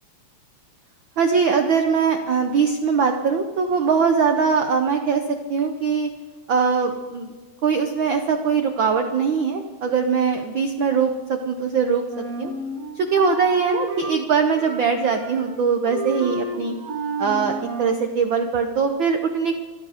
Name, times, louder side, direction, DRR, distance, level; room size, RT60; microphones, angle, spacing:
voice 1, 1.2-6.1 6.5-7.3 7.6-12.5 12.9-16.7 17.2-19.6, right 5 dB, 80° right, 5 dB, 1.1 m, -21 dB
Wind instrument woodwind instrument, 12.1-14.2 14.5-15.6 15.8-18.0, right 2 dB, 40° right, 1.3 m, -31 dB
26.5 x 10.0 x 5.0 m, 1.3 s
omnidirectional pair, 3.4 m